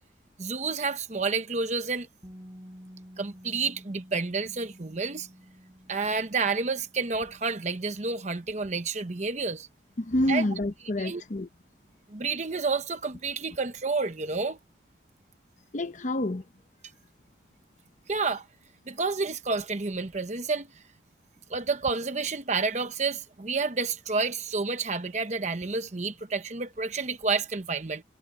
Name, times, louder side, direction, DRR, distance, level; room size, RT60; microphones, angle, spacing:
voice 1, 0.4-2.1 3.2-5.3 5.9-9.7 10.3-10.4 11.0-11.2 12.1-14.6 18.1-18.4 18.9-20.7 21.5-28.0, right 4 dB, 40° right, 0.9 m, -29 dB
Bass guitar, 2.2-8.5, equal, 25° right, 6.6 m, -51 dB
voice 2, 10.0-11.5 15.7-16.4, left 1 dB, 45° left, 0.8 m, -28 dB
head